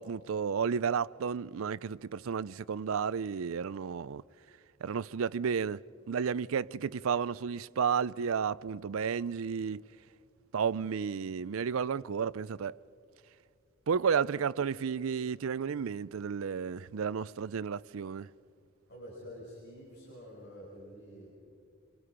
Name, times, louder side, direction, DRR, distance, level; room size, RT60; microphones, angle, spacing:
voice 1, 0.0-4.2 4.8-5.8 6.1-9.9 10.5-12.8 13.9-18.3, right 6 dB, 80° right, 0.4 m, -32 dB
voice 2, 18.9-21.3, equal, 55° left, 6.3 m, -48 dB
27.5 x 23.5 x 5.1 m
head